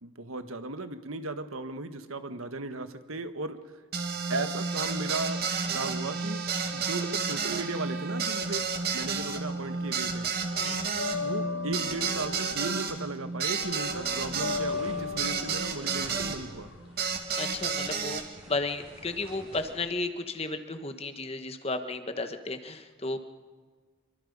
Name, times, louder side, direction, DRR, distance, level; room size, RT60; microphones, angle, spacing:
voice 1, 0.0-3.8 4.3-6.4 6.7-10.3 11.2-16.7, right 2 dB, 85° right, 9 dB, 1.5 m, -36 dB
sound 1, 3.9-16.4 17.0-18.2, right 5 dB, 50° right, 2.2 m, -31 dB
sound 2, 8.6-9.8 10.0-17.9, left 4 dB, 65° left, 1.2 m, -37 dB
sound 3, 13.5-19.7, right 1 dB, 25° right, 4.6 m, -49 dB
voice 2, 17.4-23.2, left 3 dB, 30° left, 8 dB, 1.4 m, -34 dB
27.0 x 24.0 x 5.4 m, 1.5 s
head